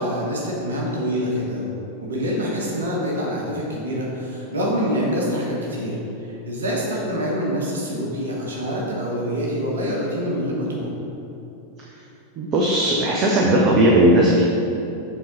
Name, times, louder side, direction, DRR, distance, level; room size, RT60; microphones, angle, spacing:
voice 1, 0.0-1.7 2.0-6.0 6.3-10.9, equal, 70° right, -3 dB, 1.3 m, -25 dB
voice 2, 12.4-14.5, right 1 dB, 35° right, -3 dB, 0.9 m, -17 dB
7.9 x 3.9 x 5.6 m, 2.9 s
figure-of-eight pair, 90°, 0 cm